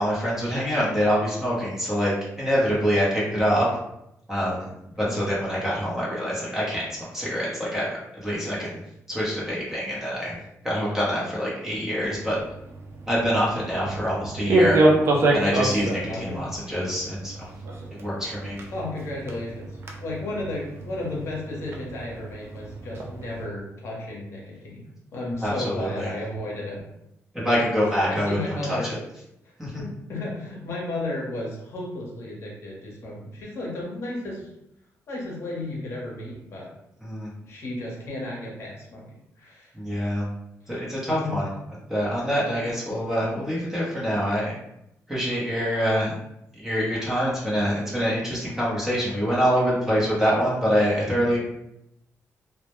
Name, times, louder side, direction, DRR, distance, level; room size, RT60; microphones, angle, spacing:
voice 1, 0.0-3.7 4.3-4.7 5.0-6.8 7.1-8.8 9.1-10.3 10.6-12.4 13.1-14.8 15.3-17.5 18.0-18.6 25.4-26.1 27.3-29.0 29.6-29.8 37.0-37.3 39.7-40.3 40.7-41.4 41.9-44.5 45.1-46.1 46.5-51.4, equal, 10° right, -7 dB, 0.7 m, -25 dB
voice 2, 4.9-5.4 16.1-16.5 18.7-26.8 27.4-27.6 28.1-28.9 29.4-34.5 35.1-36.7 37.4-39.1 39.4-39.7 40.6-41.3 51.1-51.4, left 2 dB, 55° left, -3 dB, 0.7 m, -34 dB
sound 1, 12.0-23.5, right 2 dB, 50° right, 0.4 m, -27 dB
2.1 x 2.0 x 2.9 m, 0.82 s
wide cardioid pair, 155°, 5 cm